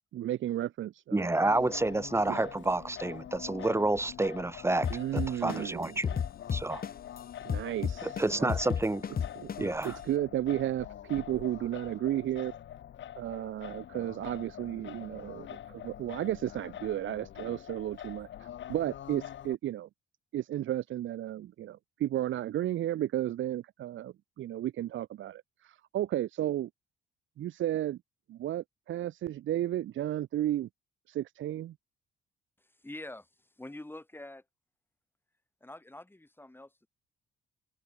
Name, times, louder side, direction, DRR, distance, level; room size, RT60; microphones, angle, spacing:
voice 1, 0.1-1.3 2.3-2.5 4.9-6.0 7.4-8.5 9.4-12.5 13.2-19.9 20.3-26.7 27.4-28.0 28.3-30.7 31.1-31.7, right 12 dB, 75° right, 2.2 m, -33 dB
voice 2, 1.1-6.1 6.5-6.8 8.0-9.1 9.6-10.0, right 2 dB, 15° right, 1.5 m, -29 dB
Singing, 1.4-19.5, left 11 dB, 70° left, 5.7 m, -45 dB
sound 1, 4.8-7.2 7.5-9.8, left 7 dB, 50° left, 3.5 m, -32 dB
voice 3, 32.6-34.4 35.6-36.9, left 1 dB, 10° left, 5.0 m, -46 dB
cardioid pair, 90°, 20 cm